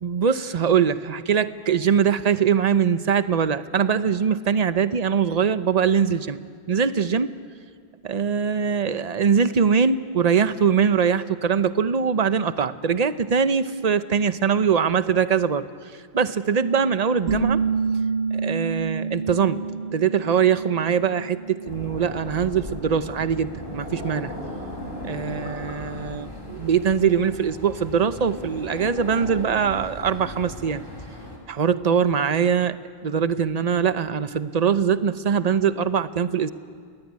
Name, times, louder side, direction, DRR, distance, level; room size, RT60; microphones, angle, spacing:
voice 1, 0.0-6.4 6.7-7.3 8.0-15.7 16.1-17.6 18.3-19.6 19.9-24.3 25.0-30.8 31.5-32.8 33.0-36.5, right 7 dB, 40° right, 12 dB, 0.9 m, -22 dB
sound 1, 17.3-22.7, right 5 dB, 90° right, 2.0 m, -28 dB
sound 2, 21.6-31.4, left 1 dB, 55° left, 4.5 m, -37 dB
29.5 x 20.0 x 9.7 m, 2.1 s
omnidirectional pair, 1.1 m